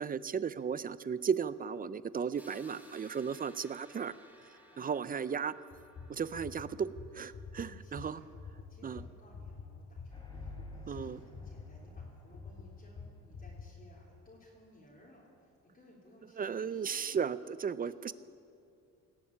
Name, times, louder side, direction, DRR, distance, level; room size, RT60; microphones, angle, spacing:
voice 1, 0.0-4.1 4.8-5.5 6.1-8.2 8.8-9.0 10.9-11.2 16.4-18.1, right 6 dB, 30° right, 16 dB, 0.4 m, -35 dB
sound 1, 2.4-8.2, equal, 5° right, 1.7 m, -60 dB
voice 2, 4.7-5.1 7.6-8.3 8.7-17.2 17.8-18.1, left 1 dB, 30° left, -6 dB, 3.5 m, -60 dB
sound 2, 5.7-13.7, left 5 dB, 50° left, 1.7 m, -47 dB
sound 3, 10.1-13.7, left 2 dB, 15° left, 4.2 m, -51 dB
18.5 x 7.0 x 8.6 m, 2.5 s
cardioid pair, 90°, 30 cm